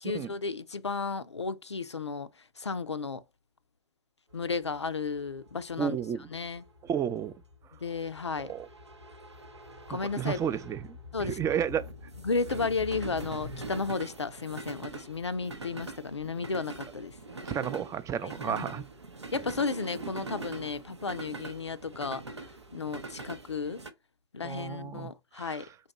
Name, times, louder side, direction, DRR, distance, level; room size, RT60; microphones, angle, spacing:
voice 1, 0.0-2.3 2.6-3.2 4.3-6.0 6.3-6.6 7.8-8.5 9.9-10.4 11.1-11.4 12.2-17.2 18.2-18.8 19.3-22.2 22.7-23.8 24.3-25.7, left 4 dB, 85° left, 0.4 m, -33 dB
sound 1, 4.4-23.9, right 2 dB, 85° right, 0.7 m, -43 dB
voice 2, 5.8-6.3 6.8-7.3 8.4-8.7 9.9-11.9 17.4-18.9 24.4-25.7, right 8 dB, 20° right, 0.4 m, -32 dB
4.2 x 2.8 x 3.4 m
figure-of-eight pair, 90°, 14 cm